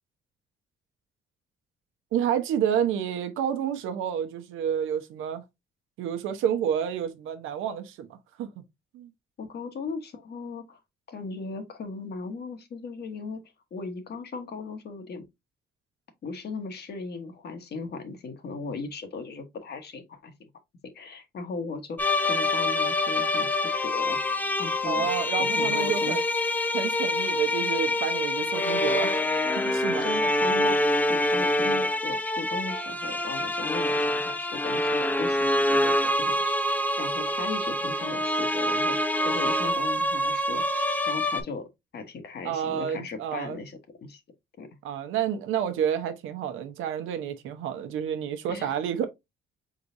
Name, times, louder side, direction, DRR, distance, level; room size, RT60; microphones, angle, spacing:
voice 1, 2.1-5.4 6.0-8.6 8.9-9.1 24.8-26.2 26.7-29.2 29.6-30.0 42.4-43.6 44.8-49.1, right 9 dB, 90° right, 0.8 m, -29 dB
voice 2, 9.4-10.8 11.1-13.4 13.7-15.2 16.2-20.5 20.9-24.2 24.6-25.1 25.4-26.2 27.3-27.4 28.5-28.7 29.5-41.6 41.9-44.2 44.6-44.7 48.5-48.7, left 4 dB, 55° left, 1.2 m, -37 dB
sound 1, 22.0-41.4, left 1 dB, 10° left, 0.7 m, -26 dB
4.7 x 3.8 x 2.6 m
cardioid pair, 90°, 20 cm